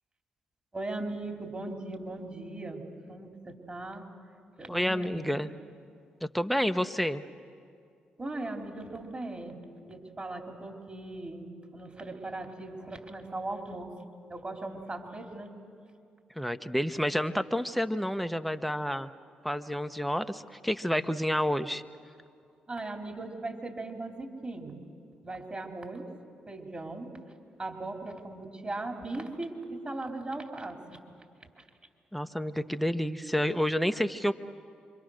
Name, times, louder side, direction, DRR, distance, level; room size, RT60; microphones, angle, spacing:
voice 1, 0.7-4.1 4.6-5.2 8.2-9.6 9.9-14.0 14.3-15.5 22.7-24.8 25.2-26.1 26.5-27.2 27.6-31.0 31.6-31.7, right 2 dB, 30° right, 3 dB, 3.8 m, -38 dB
voice 2, 4.7-5.5 6.3-7.2 16.4-19.1 19.4-21.8 32.1-34.3, equal, ahead, 9 dB, 1.1 m, -29 dB
26.5 x 24.0 x 6.6 m, 2.3 s
hypercardioid pair, 45°, 4 cm